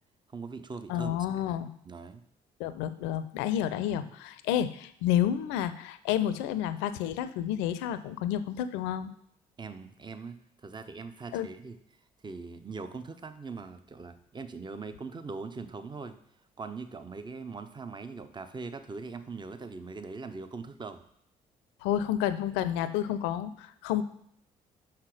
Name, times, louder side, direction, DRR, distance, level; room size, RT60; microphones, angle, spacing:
voice 1, 0.3-1.2 1.5-1.6 1.8-2.2 3.9-4.1 9.6-11.8 12.2-16.2 16.6-21.0, right 4 dB, 25° right, 10 dB, 0.8 m, -41 dB
voice 2, 0.9-1.7 2.6-9.1 11.3-11.5 21.8-24.0, left 11 dB, 70° left, 13 dB, 0.6 m, -30 dB
5.9 x 5.7 x 4.9 m, 0.69 s
hypercardioid pair, 45°, 20 cm